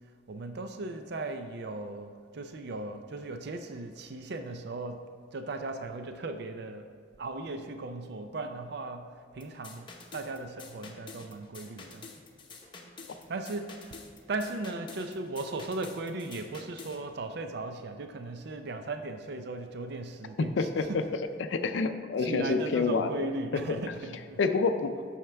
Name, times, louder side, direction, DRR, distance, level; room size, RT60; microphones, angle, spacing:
voice 1, 0.3-6.9 7.2-12.1 13.3-14.0 14.3-21.1 22.2-24.5, right 2 dB, 60° right, 7 dB, 0.5 m, -37 dB
sound 1, 9.4-17.0, left 4 dB, 25° left, 0.8 m, -48 dB
voice 2, 20.4-21.0 21.4-23.3 24.4-25.2, left 4 dB, 80° left, 8 dB, 0.4 m, -28 dB
9.0 x 6.4 x 3.4 m, 2.2 s
head